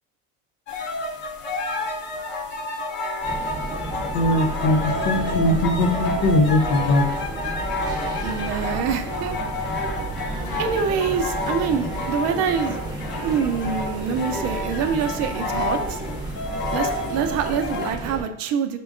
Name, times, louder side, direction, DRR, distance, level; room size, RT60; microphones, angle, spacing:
sound 1, 0.7-17.9, left 2 dB, 35° left, 0.6 m, -30 dB
sound 2, 3.2-18.2, right 1 dB, 10° right, 0.7 m, -32 dB
voice 1, 4.1-7.0, left 1 dB, 80° left, 5 dB, 0.8 m, -20 dB
voice 2, 8.2-9.4 9.7-9.8 10.6-12.8 13.2-16.0 16.7-18.8, right 7 dB, 50° right, 8 dB, 0.5 m, -25 dB
5.1 x 2.2 x 3.6 m, 0.76 s
cardioid pair, 130°, 32 cm